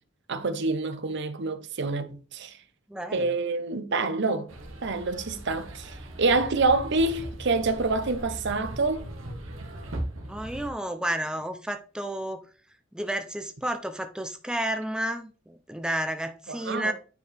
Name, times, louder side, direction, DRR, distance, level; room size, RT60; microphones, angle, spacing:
voice 1, 0.3-2.6 3.1-4.5 4.8-9.1 16.5-16.9, right 3 dB, 60° right, 0.8 m, -27 dB
voice 2, 2.9-3.3 10.3-12.4 12.9-16.9, right 1 dB, 5° right, 0.5 m, -31 dB
sound 1, 4.5-10.7, right 1 dB, 85° right, 1.4 m, -39 dB
9.3 x 4.6 x 3.4 m
head